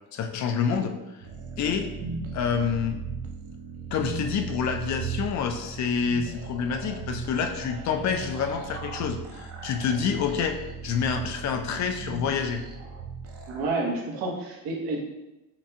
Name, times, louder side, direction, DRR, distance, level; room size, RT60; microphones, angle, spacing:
voice 1, 0.1-1.0 1.6-1.9 2.3-3.0 3.9-10.6 10.8-12.6, left 6 dB, 50° left, 6 dB, 0.4 m, -27 dB
sound 1, 1.2-13.7, right 5 dB, 40° right, 0.5 m, -37 dB
voice 2, 13.5-15.0, right 2 dB, 85° right, -3 dB, 1.1 m, -30 dB
5.7 x 2.2 x 2.8 m, 0.99 s
cardioid pair, 145°, 37 cm